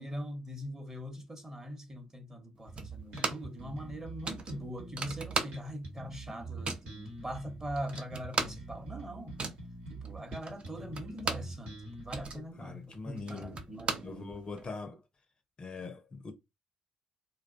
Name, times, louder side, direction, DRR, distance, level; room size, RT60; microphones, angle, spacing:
voice 1, 0.0-9.4 9.9-14.3, equal, 20° right, 0.9 m, -42 dB
Bass guitar, 2.7-12.3, right 3 dB, 65° right, 1.0 m, -45 dB
sound 1, 2.8-3.6 3.9-4.0 4.2-5.9 6.2-6.9 7.5-7.6 7.8-11.6 11.9-14.7, right 4 dB, 40° right, 0.5 m, -37 dB
voice 2, 12.3-13.6 14.0-15.0 15.6-16.3, left 4 dB, 35° left, 0.5 m, -42 dB
2.4 x 2.1 x 2.5 m
hypercardioid pair, 50°, 3 cm